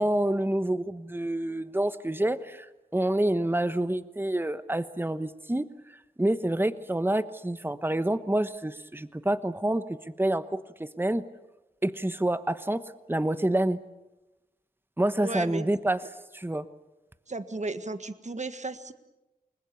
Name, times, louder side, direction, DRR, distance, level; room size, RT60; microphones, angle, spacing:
voice 1, 0.0-2.7 2.9-5.7 6.2-11.2 11.8-12.8 13.1-13.8 15.0-16.0 16.3-16.7, right 1 dB, 15° right, 12 dB, 1.1 m, -27 dB
voice 2, 15.2-15.7 17.3-18.9, right 3 dB, 50° right, 10 dB, 1.6 m, -34 dB
28.5 x 21.0 x 7.1 m, 1.0 s
wide cardioid pair, 55°, 16 cm